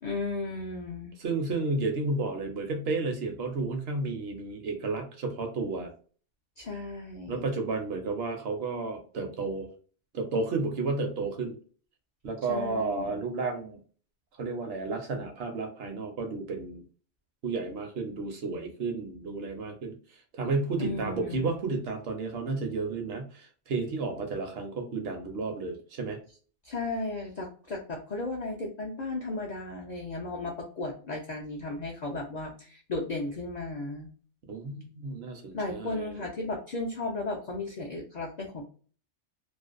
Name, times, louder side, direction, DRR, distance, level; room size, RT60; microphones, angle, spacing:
voice 1, 0.0-1.1 6.6-7.4 12.5-13.2 20.8-21.6 26.6-34.1 35.5-38.6, left 2 dB, 60° left, -2 dB, 0.4 m, -35 dB
voice 2, 1.2-5.9 7.3-9.7 10.1-11.5 12.2-13.8 14.4-16.8 17.4-20.0 20.3-26.2 34.5-36.3, right 3 dB, 65° right, 4 dB, 0.7 m, -32 dB
2.5 x 2.0 x 2.4 m, 0.41 s
omnidirectional pair, 1.2 m